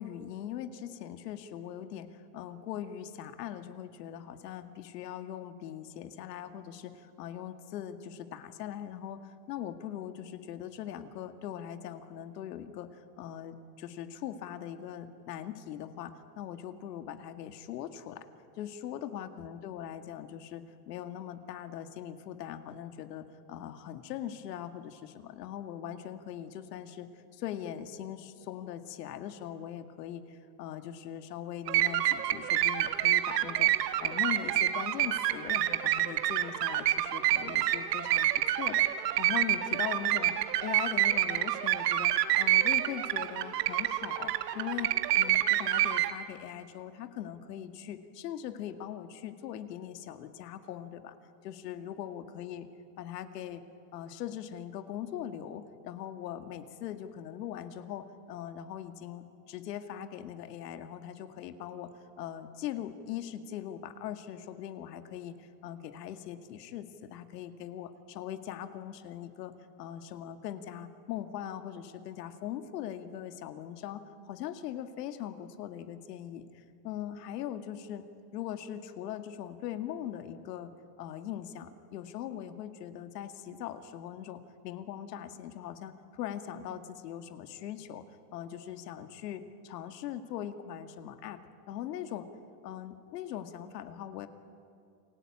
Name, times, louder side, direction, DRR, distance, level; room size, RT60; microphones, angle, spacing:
voice 1, 0.0-18.3 18.6-33.7 34.0-40.3 40.6-51.2 51.4-52.7 53.0-53.6 53.9-61.9 62.2-69.5 69.8-74.0 74.3-78.0 78.3-80.7 81.0-88.0 88.3-89.4 89.7-91.4 91.7-92.3 92.6-94.3, left 10 dB, 85° left, 8 dB, 2.3 m, -41 dB
sound 1, 31.7-46.1, right 13 dB, 80° right, 1.8 m, -28 dB
29.5 x 22.0 x 8.8 m, 2.4 s
supercardioid pair, 165°, 48 cm